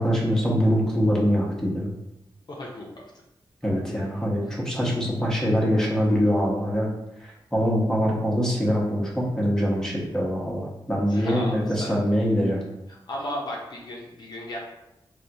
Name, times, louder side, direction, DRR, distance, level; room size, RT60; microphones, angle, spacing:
voice 1, 0.0-1.9 3.6-6.9 7.2-12.6, equal, 5° left, -4 dB, 0.8 m, -23 dB
voice 2, 2.5-2.9 4.4-4.6 11.1-12.0 12.9-14.6, left 1 dB, 50° left, -2 dB, 0.6 m, -35 dB
3.5 x 2.3 x 2.7 m, 0.88 s
wide cardioid pair, 75°, 9 cm